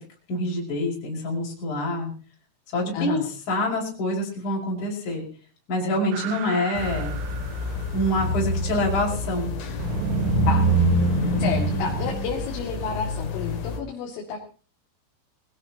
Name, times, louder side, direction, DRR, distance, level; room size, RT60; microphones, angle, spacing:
voice 1, 0.3-2.1 2.7-3.2 3.5-5.2 5.7-7.1 7.9-9.5 11.3-11.7, left 1 dB, 35° left, -3 dB, 6.4 m, -26 dB
voice 2, 2.9-3.3 10.4-10.7 11.4-14.4, left 6 dB, 75° left, -2 dB, 4.9 m, -30 dB
sound 1, 6.1-8.1 9.8-12.2, right 13 dB, 80° right, 3.5 m, -30 dB
sound 2, 6.8-13.8, left 1 dB, 55° left, 3.4 m, -26 dB
24.5 x 17.0 x 2.9 m, 0.37 s
omnidirectional pair, 5.9 m